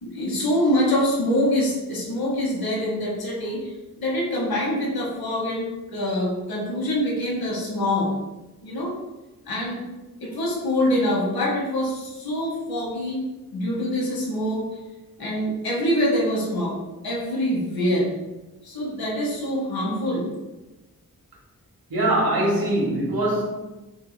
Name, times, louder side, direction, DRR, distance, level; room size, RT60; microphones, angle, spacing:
voice 1, 0.0-8.1 8.6-8.9 9.5-9.8 10.2-13.2 13.5-14.8 15.2-16.8 17.0-18.1 18.6-20.3, left 1 dB, 75° left, -4 dB, 1.1 m, -25 dB
voice 2, 21.9-23.4, right 1 dB, 70° right, -3 dB, 1.3 m, -22 dB
3.4 x 2.6 x 3.2 m, 1.1 s
cardioid pair, 65°, 36 cm